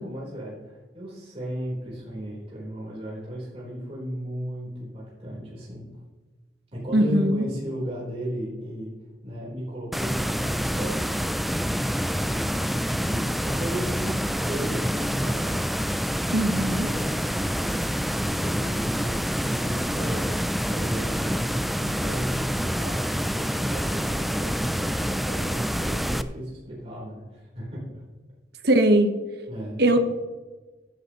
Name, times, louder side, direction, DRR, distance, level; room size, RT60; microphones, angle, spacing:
voice 1, 0.0-5.9 6.7-8.9 9.2-11.3 11.9-15.6 16.6-27.9 29.5-29.8, equal, 35° right, -6 dB, 4.0 m, -36 dB
voice 2, 6.9-7.4 16.3-16.9 28.6-29.2 29.8-30.1, right 1 dB, 65° right, 8 dB, 1.1 m, -20 dB
sound 1, 9.9-26.2, equal, ahead, 0.3 m, -27 dB
14.5 x 10.5 x 3.1 m, 1.2 s
head